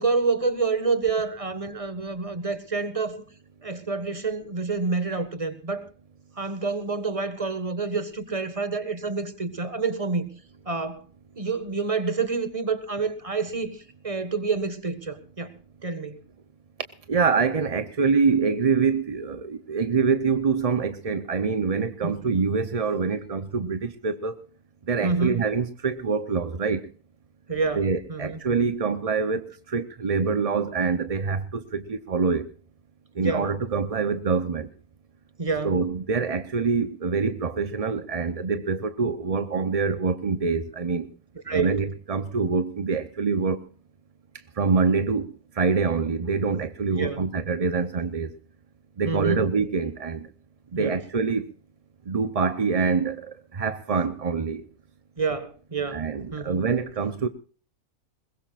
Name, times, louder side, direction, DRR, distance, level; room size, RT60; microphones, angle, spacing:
voice 1, 0.0-3.2 3.6-5.9 6.4-10.3 10.6-11.0 11.4-16.2 22.0-22.1 25.0-25.4 27.5-28.4 33.2-33.5 35.4-35.8 41.5-41.8 47.0-47.2 49.0-49.4 50.7-51.0 55.2-56.0 56.3-56.6, right 4 dB, 25° right, 1.5 m, -28 dB
voice 2, 17.1-24.5 24.8-26.9 27.7-32.5 33.1-34.7 35.6-41.1 41.5-43.7 44.5-48.4 49.0-50.3 50.7-51.5 52.1-54.7 55.9-57.3, right 5 dB, 40° right, 0.5 m, -25 dB
21.5 x 21.0 x 2.4 m
omnidirectional pair, 1.6 m